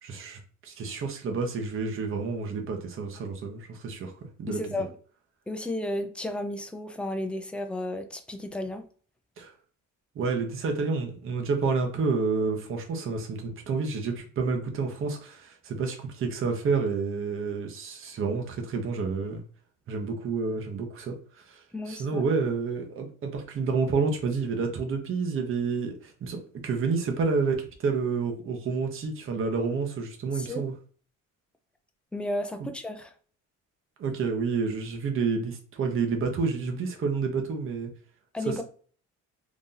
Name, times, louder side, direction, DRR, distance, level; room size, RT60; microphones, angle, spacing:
voice 1, 0.0-4.1 4.4-4.6 9.4-9.5 10.1-19.4 19.9-21.6 21.9-30.7 34.0-37.9 38.5-38.6, right 4 dB, 45° right, 3 dB, 0.9 m, -29 dB
voice 2, 4.5-4.9 5.5-8.8 21.7-22.2 30.3-30.7 32.1-33.1 38.3-38.6, left 1 dB, 5° left, 5 dB, 0.5 m, -33 dB
3.0 x 2.6 x 3.8 m, 0.43 s
cardioid pair, 135°, 31 cm